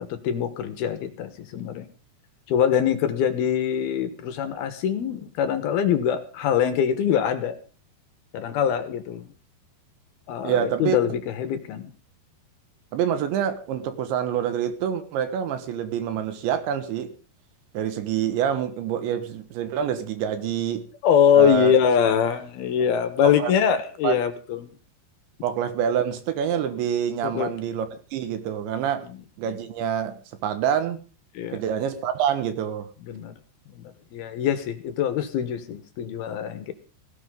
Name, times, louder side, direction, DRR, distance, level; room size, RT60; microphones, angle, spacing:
voice 1, 0.0-1.9 2.5-7.6 8.3-9.3 10.3-11.9 21.0-24.7 27.2-27.5 29.1-29.2 31.3-31.6 33.0-33.3 33.7-36.7, left 8 dB, 70° left, 10 dB, 2.9 m, -23 dB
voice 2, 10.4-11.0 12.9-17.1 17.7-20.8 21.4-21.7 23.2-23.5 24.0-24.2 25.4-29.1 29.4-31.0 31.5-32.9, right 9 dB, 90° right, 9 dB, 3.9 m, -26 dB
17.5 x 17.0 x 3.8 m, 0.37 s
omnidirectional pair, 5.1 m